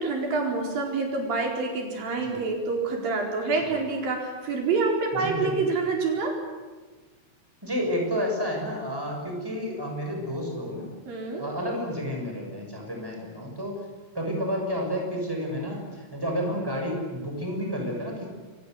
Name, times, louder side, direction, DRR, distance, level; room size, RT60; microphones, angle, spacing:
voice 1, 0.0-6.4 11.1-11.5, right 4 dB, 85° right, 1 dB, 6.3 m, -27 dB
voice 2, 5.1-5.7 7.6-10.9 11.4-13.8 14.1-18.3, equal, 5° right, 1 dB, 6.5 m, -30 dB
28.0 x 23.0 x 8.1 m, 1.3 s
omnidirectional pair, 4.0 m